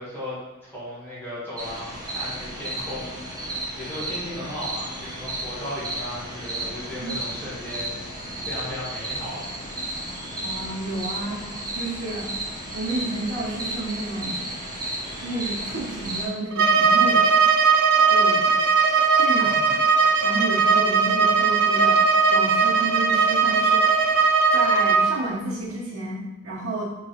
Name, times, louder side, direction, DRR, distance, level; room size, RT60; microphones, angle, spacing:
voice 1, 0.0-8.0 8.4-9.5, left 1 dB, 10° left, -10 dB, 1.5 m, -36 dB
sound 1, 1.6-16.3, right 1 dB, 20° right, 0.8 m, -33 dB
voice 2, 10.4-11.4 11.7-12.3 12.7-14.5 15.2-17.3 18.1-18.5 19.2-19.8 20.2-23.8 24.5-26.9, right 2 dB, 85° right, -9 dB, 0.9 m, -31 dB
Bowed string instrument, 16.5-25.1, right 5 dB, 60° right, 0.4 m, -19 dB
4.7 x 2.9 x 2.8 m, 1.1 s
head